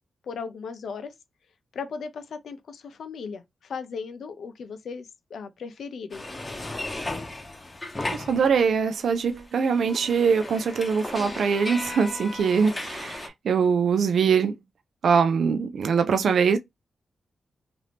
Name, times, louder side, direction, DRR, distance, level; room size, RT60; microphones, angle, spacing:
voice 1, 0.2-1.1 1.7-6.3, left 5 dB, 80° left, 0.5 m, -37 dB
sound 1, 6.1-8.9 9.2-13.3, left 2 dB, 25° left, 0.8 m, -36 dB
voice 2, 8.1-14.5 15.0-16.6, right 6 dB, 75° right, 0.4 m, -23 dB
2.8 x 2.5 x 3.3 m
cardioid pair, 70°, 0 cm